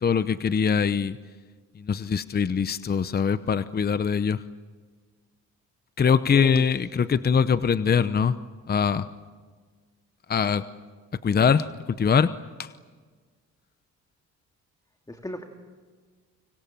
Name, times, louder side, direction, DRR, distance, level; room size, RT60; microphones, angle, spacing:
voice 1, 0.0-1.2 1.8-4.4 6.0-8.4 8.7-9.1 10.3-10.6 11.2-12.3 12.6-12.7, left 6 dB, 30° left, 13 dB, 0.8 m, -23 dB
voice 2, 6.0-6.6 7.1-7.4 15.1-15.4, left 1 dB, 10° left, 4 dB, 2.4 m, -37 dB
30.0 x 25.5 x 7.4 m, 1.5 s
cardioid pair, 90°, 30 cm